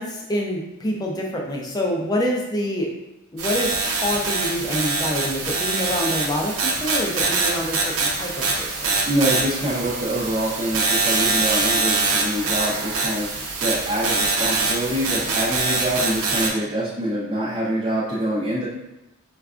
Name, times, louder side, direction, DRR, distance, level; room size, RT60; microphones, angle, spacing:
voice 1, 0.0-2.9 3.3-9.0, equal, 20° left, -1 dB, 0.5 m, -26 dB
sound 1, 3.4-16.5, right 3 dB, 90° right, 0.7 m, -24 dB
voice 2, 9.1-13.3 13.6-18.7, right 1 dB, 30° right, -9 dB, 0.6 m, -25 dB
4.5 x 2.3 x 2.4 m, 0.96 s
head